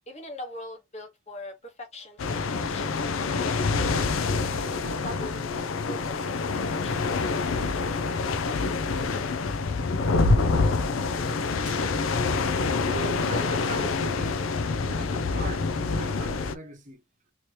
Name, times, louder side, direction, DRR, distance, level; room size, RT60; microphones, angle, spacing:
voice 1, 0.1-3.2 3.8-4.6 4.8-6.5 6.8-6.9, left 1 dB, 35° left, 1.0 m, -42 dB
sound 1, 2.2-16.5, left 4 dB, 85° left, 0.5 m, -26 dB
voice 2, 12.7-14.5 14.8-17.0, right 2 dB, 40° right, 0.8 m, -39 dB
2.9 x 2.9 x 3.1 m
head